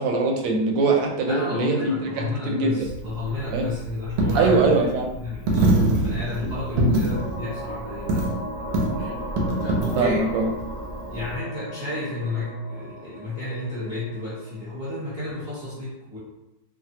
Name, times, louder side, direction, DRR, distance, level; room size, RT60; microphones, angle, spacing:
voice 1, 0.0-2.9 3.5-3.7 4.3-5.1 9.0-9.1 10.0-10.5, right 3 dB, 85° right, 1 dB, 1.3 m, -22 dB
voice 2, 1.3-4.9 5.2-8.3 8.6-8.9 9.6-10.4 11.1-16.2, left 2 dB, 35° right, -10 dB, 0.8 m, -31 dB
Coin (dropping), 2.8-11.4, right 2 dB, 70° right, 0.9 m, -26 dB
sound 1, 7.1-14.7, equal, 55° left, 0.7 m, -37 dB
3.2 x 2.3 x 2.7 m, 0.93 s
omnidirectional pair, 2.0 m